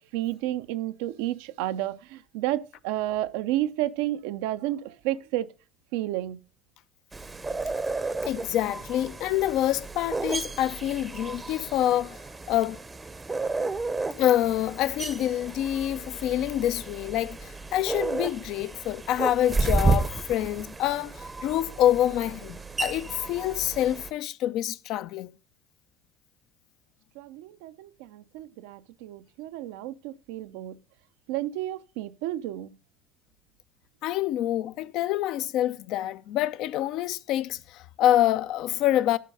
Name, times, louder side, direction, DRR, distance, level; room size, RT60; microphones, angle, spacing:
voice 1, 0.1-5.5 5.9-6.4 27.2-30.8 31.3-32.7, right 14 dB, 70° right, 0.5 m, -31 dB
sound 1, 7.1-24.1, right 3 dB, 20° right, 0.7 m, -32 dB
voice 2, 8.2-12.2 12.5-12.8 14.2-25.3 34.0-39.2, left 12 dB, 60° left, 0.5 m, -26 dB
11.0 x 4.5 x 5.4 m
hypercardioid pair, 70°, 0 cm